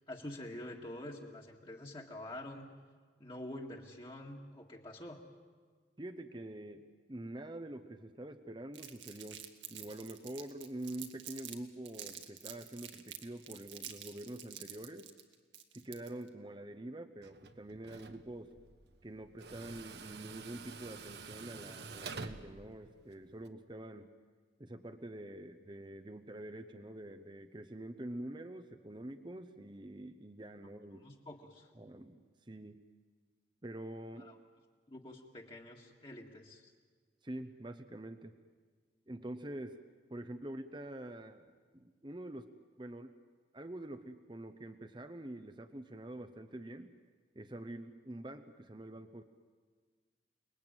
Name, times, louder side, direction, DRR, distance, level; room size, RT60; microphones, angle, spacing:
voice 1, 0.1-2.7 3.2-5.2 31.0-31.7 34.2-34.3 34.9-36.7, left 1 dB, 30° left, -1 dB, 2.0 m, -47 dB
voice 2, 6.0-9.4 9.7-15.1 15.7-18.5 19.0-24.1 24.6-31.1 31.8-32.8 33.6-34.3 37.2-38.3 39.1-39.8 40.1-42.5 42.8-43.1 43.5-46.9 47.3-49.2, right 1 dB, 25° right, 8 dB, 0.9 m, -46 dB
Crumpling crinkling, 8.7-11.6 11.8-16.3, right 10 dB, 85° right, 2.1 m, -48 dB
Tools, 17.2-23.5, right 4 dB, 70° right, 1.2 m, -49 dB
29.5 x 20.5 x 9.1 m, 1.5 s
head